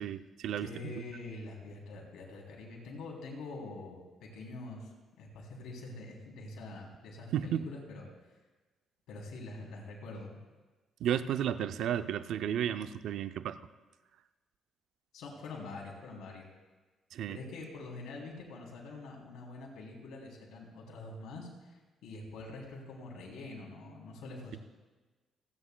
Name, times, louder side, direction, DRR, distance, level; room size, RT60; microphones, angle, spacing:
voice 1, 0.0-0.9 7.3-7.6 11.0-13.6 17.1-17.4, right 10 dB, 80° right, 12 dB, 0.4 m, -33 dB
voice 2, 0.6-4.9 5.2-8.1 9.1-10.4 15.1-16.5 17.3-24.6, left 2 dB, 85° left, -1 dB, 3.1 m, -45 dB
28.0 x 9.6 x 2.3 m, 1.2 s
cardioid pair, 90°, 0 cm